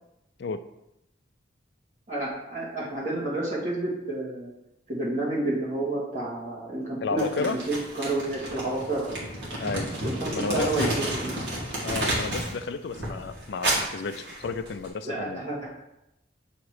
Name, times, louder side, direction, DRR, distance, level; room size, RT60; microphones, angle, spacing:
voice 1, 2.1-4.5 4.9-9.1 10.0-11.3 15.0-15.7, right 2 dB, 40° right, -7 dB, 2.1 m, -30 dB
voice 2, 7.0-7.6 9.6-10.0 10.3-10.9 11.8-15.4, left 4 dB, 65° left, 10 dB, 0.4 m, -32 dB
Crumpling crinkling, 7.2-12.6 12.9-14.9, right 1 dB, 60° right, 1.9 m, -31 dB
7.2 x 3.0 x 4.8 m, 0.89 s
head